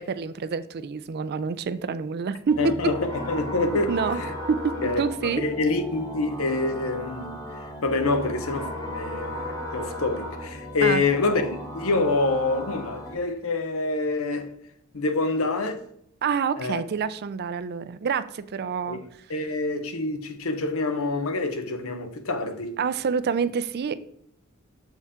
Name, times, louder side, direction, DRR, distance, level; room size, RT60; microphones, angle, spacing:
voice 1, 0.0-2.6 3.7-4.2 4.5-4.6 5.0-5.4 10.8-11.0 16.2-19.0 22.8-24.0, right 6 dB, 50° right, 0.4 m, -27 dB
sound 1, 2.5-13.1, left 1 dB, 15° left, 1.1 m, -36 dB
voice 2, 2.6-4.3 4.8-7.4 7.8-14.5 14.9-15.8 16.6-16.8 18.9-19.0 19.3-22.8, left 3 dB, 70° left, 0.8 m, -26 dB
6.8 x 4.5 x 3.6 m
head